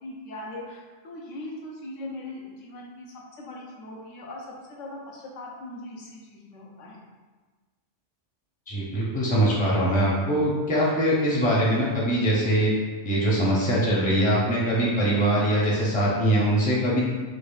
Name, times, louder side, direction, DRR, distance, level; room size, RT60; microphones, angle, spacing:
voice 1, 0.0-7.0, left 1 dB, 75° left, -3 dB, 1.0 m, -40 dB
voice 2, 8.7-12.7 13.0-17.0, right 1 dB, 10° left, -6 dB, 0.5 m, -22 dB
4.8 x 2.4 x 2.3 m, 1.3 s
omnidirectional pair, 1.3 m